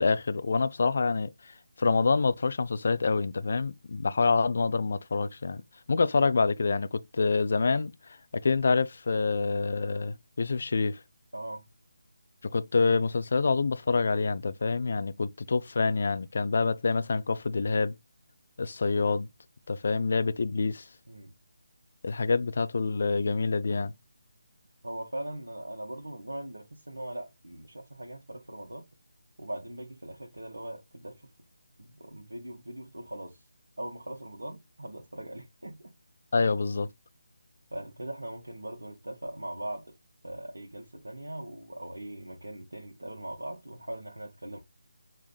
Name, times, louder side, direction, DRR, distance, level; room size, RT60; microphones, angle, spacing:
voice 1, 0.0-5.6 5.9-11.0 12.4-17.9 18.6-19.3 19.7-20.9 22.0-23.9 36.3-36.9, left 4 dB, 50° left, 0.5 m, -27 dB
voice 2, 11.3-11.7 21.1-21.3 24.8-28.9 29.4-31.2 31.8-33.4 33.8-35.9 37.7-39.9 40.2-44.6, right 1 dB, 75° right, 1.5 m, -40 dB
6.6 x 3.5 x 2.3 m
figure-of-eight pair, 150°, 0 cm